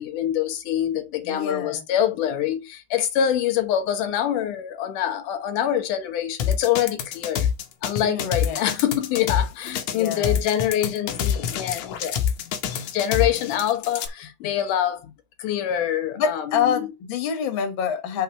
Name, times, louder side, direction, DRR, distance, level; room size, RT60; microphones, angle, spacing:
voice 1, 0.0-7.5 7.8-12.6 12.9-15.1 15.4-16.9, left 10 dB, 90° left, 2.6 m, -25 dB
voice 2, 1.3-1.8 8.0-8.6 9.9-10.4 16.2-18.2, left 7 dB, 50° left, 1.8 m, -26 dB
sound 1, 6.4-14.1, left 8 dB, 70° left, 2.2 m, -26 dB
5.8 x 4.0 x 5.9 m
omnidirectional pair, 3.5 m